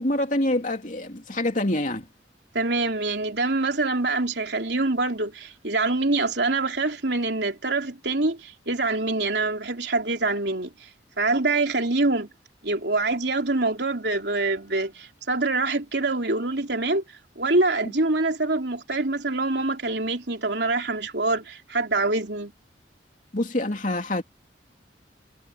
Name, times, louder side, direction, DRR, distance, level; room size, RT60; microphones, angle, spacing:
voice 1, 0.0-2.1 23.3-24.2, left 1 dB, 45° left, 3.1 m, -26 dB
voice 2, 2.5-10.9 11.2-12.3 12.6-17.0 17.3-22.5, right 2 dB, 70° right, 3.3 m, -25 dB
head